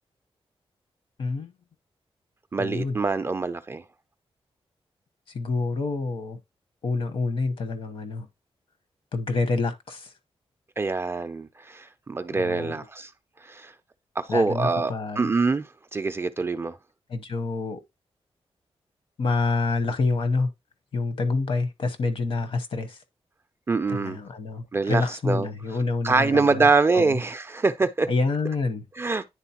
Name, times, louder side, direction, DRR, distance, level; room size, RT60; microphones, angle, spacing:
voice 1, 1.2-1.5 2.6-3.0 5.3-6.4 6.8-8.3 9.1-10.1 12.3-12.8 14.3-15.3 17.1-17.8 19.2-20.5 20.9-23.0 23.9-26.7 26.9-27.2 28.1-28.8, left 3 dB, 60° left, 0.9 m, -27 dB
voice 2, 2.5-3.8 10.8-13.1 13.4-13.7 14.2-16.8 23.7-24.2 24.7-25.5 26.0-28.1 29.0-29.2, right 3 dB, 25° right, 0.3 m, -24 dB
9.8 x 3.8 x 2.8 m
wide cardioid pair, 165°, 10 cm